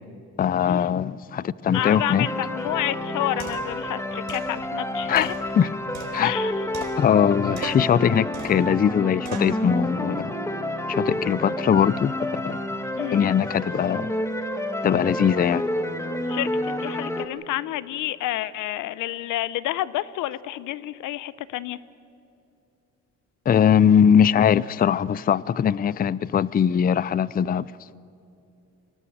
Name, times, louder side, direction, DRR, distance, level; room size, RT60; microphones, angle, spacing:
voice 1, 0.4-2.3 5.1-5.3 5.6-5.7 6.1-6.3 7.0-10.3 10.9-12.6 13.1-14.1 14.8-15.6 23.5-27.7, left 8 dB, 30° left, 0.4 m, -21 dB
voice 2, 1.7-5.3 6.2-6.6 13.0-13.2 16.3-16.5 16.8-21.8, left 15 dB, 85° left, 0.7 m, -29 dB
sound 1, 1.7-17.3, left 1 dB, 10° left, 1.7 m, -29 dB
sound 2, 2.7-2.8 3.4-3.8 4.3-4.5 5.2-6.4 6.7-7.3 7.6-8.0 8.3-8.7 9.2-9.6, right 6 dB, 65° right, 3.9 m, -39 dB
24.0 x 18.5 x 7.9 m
cardioid pair, 90°, 30 cm